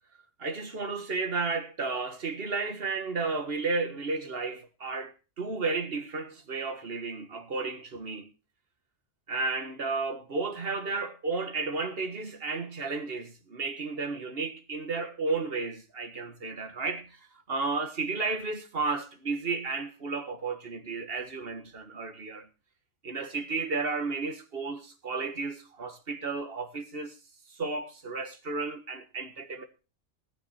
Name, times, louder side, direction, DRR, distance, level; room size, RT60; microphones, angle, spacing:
voice 1, 0.4-8.3 9.3-17.2 17.5-22.5 23.0-27.2 27.5-29.6, right 4 dB, 55° right, 1.8 m, -33 dB
17.5 x 9.6 x 4.3 m
omnidirectional pair, 1.2 m